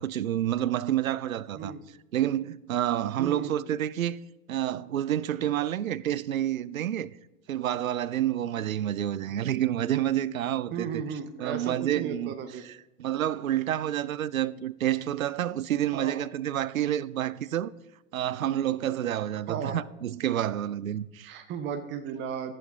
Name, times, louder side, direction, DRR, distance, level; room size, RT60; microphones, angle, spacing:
voice 1, 0.0-1.7 2.1-4.2 4.5-7.1 7.5-11.0 11.4-12.3 12.6-17.7 18.1-21.3, right 12 dB, 80° right, 0.5 m, -29 dB
voice 2, 3.2-3.7 10.7-12.6 15.9-16.2 19.5-19.8 21.2-22.5, right 7 dB, 25° right, 0.8 m, -35 dB
15.0 x 7.7 x 3.6 m
figure-of-eight pair, 85°, 41 cm